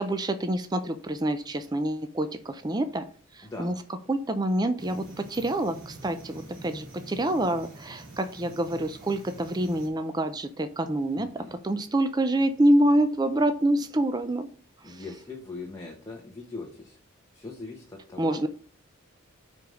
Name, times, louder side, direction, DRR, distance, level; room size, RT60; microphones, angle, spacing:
voice 1, 0.0-3.0 3.3-3.7 4.1-14.5 14.8-15.0 18.2-18.5, right 1 dB, 20° right, 9 dB, 0.4 m, -26 dB
voice 2, 3.4-3.8 11.2-11.6 14.8-17.0 17.3-18.5, left 3 dB, 15° left, -1 dB, 1.1 m, -40 dB
sound 1, 4.8-9.9, right 2 dB, 65° right, 2.6 m, -46 dB
5.3 x 4.8 x 6.3 m, 0.42 s
head